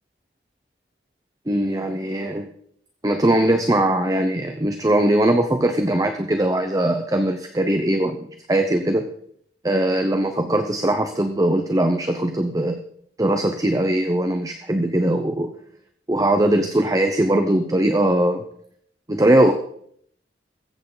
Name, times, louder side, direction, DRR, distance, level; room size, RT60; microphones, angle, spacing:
voice 1, 1.5-2.5 3.0-8.2 8.5-9.1 9.6-12.8 13.2-15.5 16.1-18.4 19.1-19.5, right 1 dB, 20° right, 6 dB, 0.8 m, -20 dB
21.0 x 8.3 x 4.0 m, 0.67 s
head